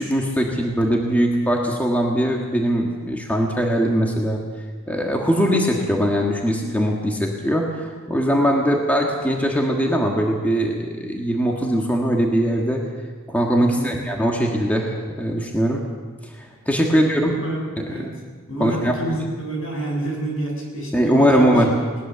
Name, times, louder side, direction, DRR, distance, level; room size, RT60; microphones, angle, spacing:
voice 1, 0.0-4.4 4.9-12.8 13.3-15.8 16.4-17.3 17.8-18.1 18.6-19.0 20.9-21.7, equal, 5° left, 0 dB, 1.7 m, -21 dB
voice 2, 13.6-13.9 16.9-17.0 17.3-18.1 18.5-21.8, right 1 dB, 65° left, -1 dB, 7.1 m, -28 dB
20.5 x 19.0 x 6.9 m, 1.5 s
head